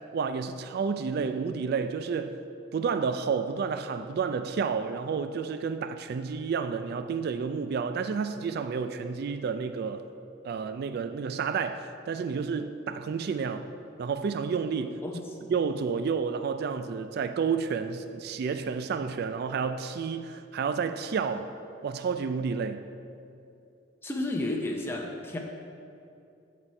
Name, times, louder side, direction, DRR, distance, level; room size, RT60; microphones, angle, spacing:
voice 1, 0.1-2.4 2.7-10.1 10.4-13.7 14.0-15.0 15.5-21.5 21.8-22.9, right 5 dB, 55° right, 0.3 m, -30 dB
voice 2, 24.0-25.4, left 1 dB, 10° left, 0.6 m, -31 dB
12.5 x 4.2 x 4.4 m
head